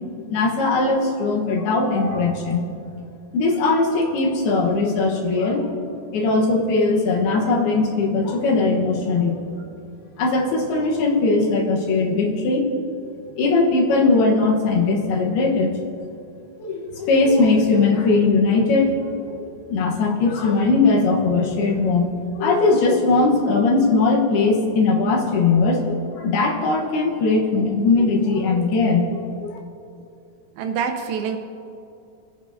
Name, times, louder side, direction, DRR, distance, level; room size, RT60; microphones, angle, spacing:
voice 1, 0.3-2.6 3.3-5.6 6.1-9.4 10.2-12.7 13.4-15.7 16.6-18.9 19.2-19.4 19.7-22.1 22.4-29.6, left 3 dB, 80° left, 0 dB, 3.2 m, -19 dB
voice 2, 30.6-31.4, right 6 dB, 80° right, 5 dB, 2.3 m, -25 dB
20.5 x 9.3 x 2.7 m, 2.6 s
omnidirectional pair, 4.5 m